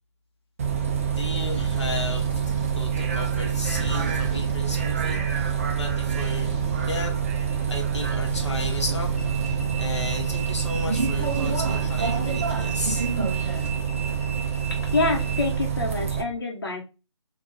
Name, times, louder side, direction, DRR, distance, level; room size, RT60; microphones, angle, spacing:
Bus, 0.6-16.2, right 7 dB, 30° right, 0.4 m, -26 dB
voice 1, 1.1-2.3 2.7-6.6 6.8-7.1 7.7-9.1 9.4-13.1, left 3 dB, 70° left, 1.1 m, -34 dB
sound 1, 1.4-2.8 3.5-4.9 5.6-7.2 7.6-9.6 10.8-12.6 13.3-13.8 14.3-15.4, right 4 dB, 15° right, 0.8 m, -36 dB
voice 2, 14.8-16.8, left 3 dB, 50° left, 1.0 m, -26 dB
3.2 x 2.5 x 3.4 m
figure-of-eight pair, 145°, 16 cm